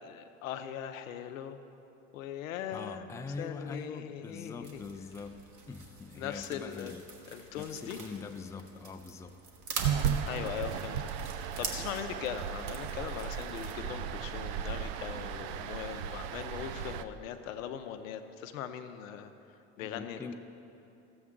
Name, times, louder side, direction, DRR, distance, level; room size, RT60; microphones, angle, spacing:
voice 1, 0.0-1.6 2.1-3.1 3.4-4.8 6.2-7.0 7.3-8.0 10.3-11.0 11.6-19.3 19.8-20.3, left 9 dB, 90° left, 9 dB, 0.7 m, -40 dB
voice 2, 2.7-5.4 5.7-7.1 7.6-9.4 11.6-11.8 19.8-20.3, left 4 dB, 10° left, 5 dB, 0.4 m, -43 dB
sound 1, 4.6-13.7, right 4 dB, 45° right, 1.5 m, -45 dB
sound 2, 9.8-17.0, right 8 dB, 65° right, 0.5 m, -35 dB
13.0 x 7.9 x 3.7 m, 2.8 s
hypercardioid pair, 85°, 39 cm